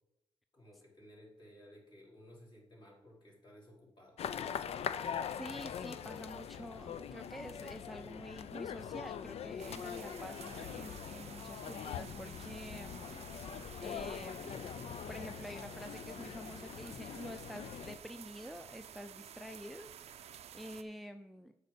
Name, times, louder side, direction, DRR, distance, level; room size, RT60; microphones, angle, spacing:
voice 1, 0.5-4.2, equal, 45° left, -3 dB, 3.5 m, -57 dB
sound 1, 4.2-18.0, left 8 dB, 75° left, 0.4 m, -43 dB
voice 2, 4.9-13.3 13.5-14.6 15.1-21.5, equal, ahead, 7 dB, 0.4 m, -48 dB
sound 2, 9.6-20.8, right 9 dB, 85° right, 0.5 m, -52 dB
8.1 x 5.5 x 5.2 m, 0.90 s
cardioid pair, 85°, 11 cm